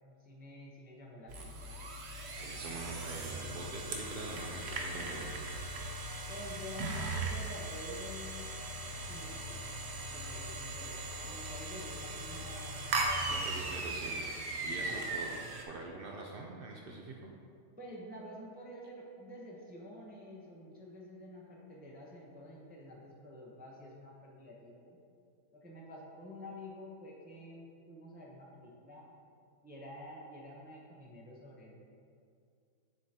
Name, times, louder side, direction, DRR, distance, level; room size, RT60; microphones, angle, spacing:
voice 1, 0.0-1.8 6.3-8.5 9.1-9.6 10.1-13.9 14.6-15.2 17.8-25.0 25.5-29.2 29.6-31.8, left 1 dB, 15° right, -4 dB, 0.4 m, -49 dB
sound 1, 1.3-15.6, right 2 dB, 55° right, 0.8 m, -38 dB
voice 2, 2.4-5.3 13.3-14.3 14.6-15.4 15.7-17.3, right 3 dB, 85° right, 0 dB, 0.5 m, -44 dB
7.5 x 5.4 x 2.8 m, 2.4 s
omnidirectional pair, 1.6 m